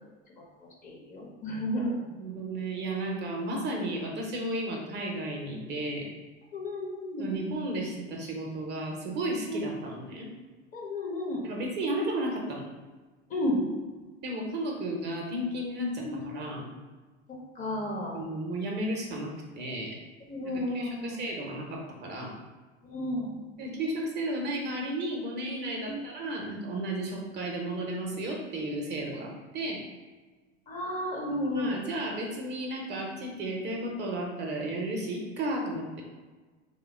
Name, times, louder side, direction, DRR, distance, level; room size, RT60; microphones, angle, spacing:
voice 1, 0.8-2.0 6.5-7.3 9.5-9.6 10.7-11.4 13.3-13.6 16.0-16.3 17.6-18.1 20.3-21.2 22.8-23.3 25.9-26.0 30.7-31.8, left 1 dB, 25° left, -2 dB, 0.7 m, -32 dB
voice 2, 2.2-6.1 7.2-10.3 11.4-12.6 14.2-16.6 18.1-20.0 20.4-22.4 23.6-29.8 31.5-36.0, right 1 dB, 30° right, 0 dB, 0.7 m, -33 dB
3.4 x 2.2 x 3.4 m, 1.3 s
figure-of-eight pair, 80°, 34 cm